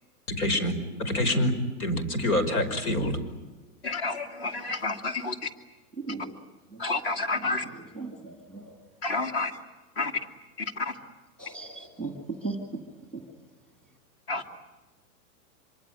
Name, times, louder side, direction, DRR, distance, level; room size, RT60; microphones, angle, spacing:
voice 1, 0.3-1.5 1.8-3.2, left 1 dB, 75° left, 10 dB, 5.5 m, -26 dB
voice 2, 3.8-5.5 6.8-7.6 9.0-9.5 10.0-10.1 10.6-10.9 14.3-14.4, left 3 dB, 40° left, 6 dB, 2.5 m, -30 dB
voice 3, 7.3-8.7 11.4-12.1 12.4-12.6, right 3 dB, ahead, 3 dB, 2.0 m, -38 dB
26.0 x 24.0 x 9.0 m, 1.2 s
supercardioid pair, 180°, 44 cm